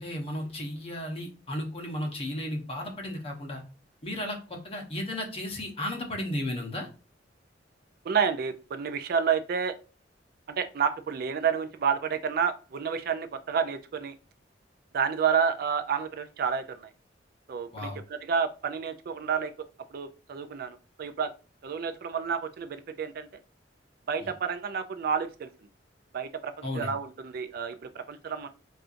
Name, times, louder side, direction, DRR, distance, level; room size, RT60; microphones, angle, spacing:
voice 1, 0.0-3.6 4.0-6.9 17.7-18.0 24.2-24.3 26.6-26.9, left 1 dB, 35° left, 2 dB, 0.8 m, -34 dB
voice 2, 8.0-9.7 10.5-14.1 14.9-16.9 17.5-19.5 19.9-21.3 21.6-23.3 24.1-25.5 26.1-28.5, right 6 dB, 55° right, 10 dB, 0.4 m, -30 dB
4.3 x 2.4 x 2.5 m, 0.33 s
head